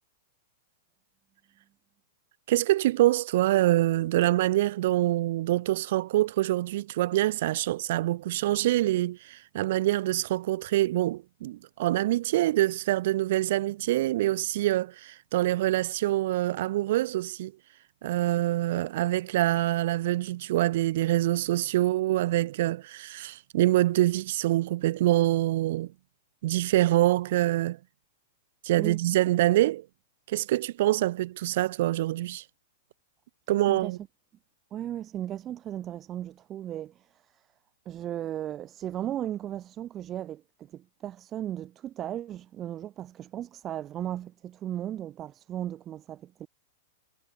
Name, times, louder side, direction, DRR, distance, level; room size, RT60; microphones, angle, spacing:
voice 1, 2.5-17.5 18.0-25.9 26.4-27.8 28.6-29.9 30.3-32.4 33.5-34.0, right 15 dB, 45° right, 2.7 m, -25 dB
voice 2, 34.7-37.4 37.9-46.5, right 11 dB, 15° right, 4.1 m, -36 dB
supercardioid pair, 175°, 0 cm